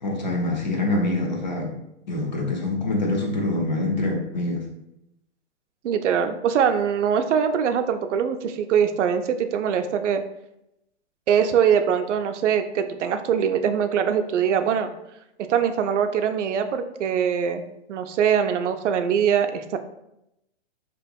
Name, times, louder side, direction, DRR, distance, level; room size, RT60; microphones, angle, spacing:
voice 1, 0.0-1.8 2.1-4.7, left 2 dB, 40° left, 1 dB, 0.5 m, -25 dB
voice 2, 5.8-10.2 11.3-14.9 15.5-17.6 17.9-19.8, right 7 dB, 85° right, 8 dB, 0.5 m, -22 dB
3.5 x 2.9 x 2.2 m, 0.84 s
hypercardioid pair, 180°, 35 cm